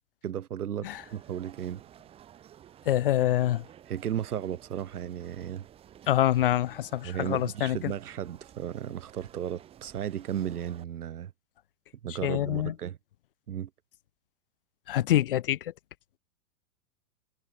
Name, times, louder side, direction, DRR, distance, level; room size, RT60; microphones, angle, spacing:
voice 1, 0.2-1.8 3.9-5.7 7.0-11.3 12.0-13.0 13.5-13.7, right 10 dB, 90° right, 2.9 m, -35 dB
sound 1, 0.9-10.8, right 10 dB, 15° right, 4.9 m, -53 dB
voice 2, 2.9-3.6 6.1-7.9 12.1-12.7 14.9-15.7, left 13 dB, 40° left, 1.0 m, -26 dB
supercardioid pair, 180°, 44 cm